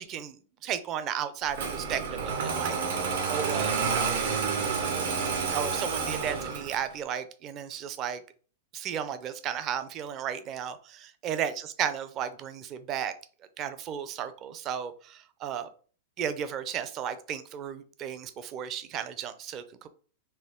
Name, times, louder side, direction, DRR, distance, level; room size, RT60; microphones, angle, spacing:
voice 1, 0.0-2.8 3.3-4.2 5.5-8.2 8.7-13.1 13.6-15.7 16.2-19.9, right 9 dB, 25° right, 11 dB, 0.5 m, -34 dB
Engine starting, 1.5-6.9, right 5 dB, 70° right, 1.5 m, -29 dB
4.5 x 3.3 x 3.6 m, 0.40 s
supercardioid pair, 165°, 0 cm